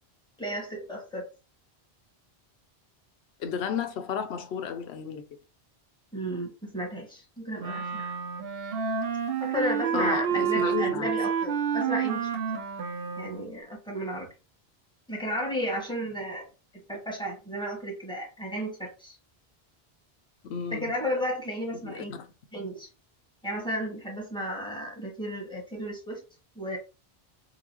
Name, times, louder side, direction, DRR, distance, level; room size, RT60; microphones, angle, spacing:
voice 1, 0.4-1.3 6.1-8.1 9.4-12.6 13.2-14.3 15.1-16.5 16.7-19.2 20.7-22.2 22.5-22.9 23.4-26.2 26.5-26.8, equal, 5° left, 1.4 m, -33 dB
voice 2, 3.4-5.2 9.9-11.1 20.4-21.0 21.8-22.3, left 7 dB, 90° left, 0.9 m, -32 dB
Wind instrument woodwind instrument, 7.6-13.5, right 7 dB, 65° right, 0.8 m, -29 dB
3.9 x 2.4 x 2.9 m
omnidirectional pair, 1.1 m